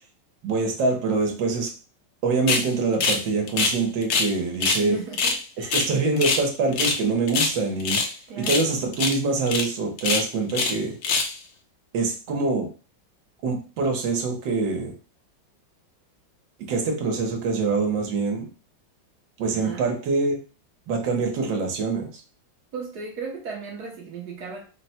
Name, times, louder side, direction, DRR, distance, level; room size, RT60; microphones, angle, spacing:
voice 1, 0.4-1.7 2.2-5.0 5.6-8.0 8.4-11.0 11.9-12.7 13.4-14.9 16.7-18.5 19.4-20.4 20.9-22.2, right 3 dB, 75° right, 2 dB, 1.6 m, -25 dB
sound 1, 2.5-2.7 3.0-3.2 3.5-4.3 4.6-4.8 5.1-6.4 6.7-7.0 7.3-8.1 8.4-8.7 8.9-9.2 9.5-9.6 10.0-10.8 11.0-11.3, left 4 dB, 65° left, 1.0 m, -24 dB
voice 2, 4.8-5.8 8.3-8.8 19.5-20.0 22.7-24.7, right 5 dB, 60° right, 0 dB, 1.3 m, -36 dB
4.0 x 2.1 x 4.2 m, 0.35 s
omnidirectional pair, 2.0 m